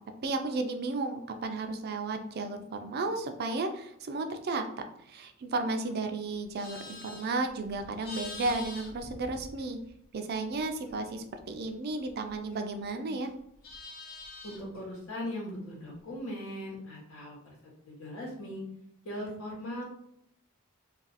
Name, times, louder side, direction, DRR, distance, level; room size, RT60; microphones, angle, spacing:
voice 1, 0.2-4.7 5.1-9.8 10.1-13.3, right 3 dB, 50° right, 6 dB, 0.4 m, -33 dB
Livestock farm animals working animals, 6.3-10.0 10.3-12.9 13.2-14.8, left 2 dB, 45° left, 0.6 m, -47 dB
voice 2, 14.4-17.4 17.9-18.6 19.0-19.8, left 1 dB, 75° left, -2 dB, 1.1 m, -39 dB
2.5 x 2.3 x 4.0 m, 0.75 s
head